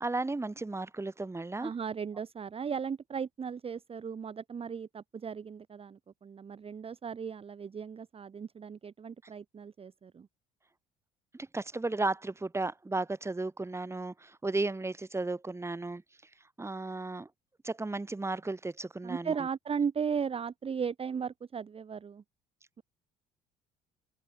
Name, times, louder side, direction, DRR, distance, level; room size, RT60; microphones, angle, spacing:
voice 1, 0.0-1.7 11.3-16.0 16.6-17.3 17.6-19.3, right 2 dB, 15° right, 1.5 m, -34 dB
voice 2, 1.6-10.3 19.0-22.2, right 6 dB, 30° right, 0.9 m, -36 dB
hypercardioid pair, 60°, 20 cm